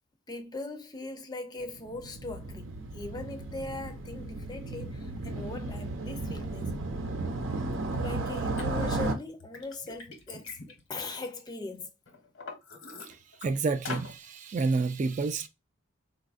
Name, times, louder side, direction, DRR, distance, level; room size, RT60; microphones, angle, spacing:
voice 1, 0.3-6.7 7.8-10.6 10.9-11.9, left 2 dB, 20° left, 0.5 m, -40 dB
Motorcycle, 1.6-9.1, right 2 dB, 80° right, 0.7 m, -34 dB
Liquid, 8.6-8.7 9.2-11.6 12.1-13.5 13.9-14.1, left 4 dB, 80° left, 1.0 m, -42 dB
voice 2, 13.0-15.5, right 4 dB, 40° right, 0.3 m, -30 dB
4.1 x 2.3 x 2.4 m
head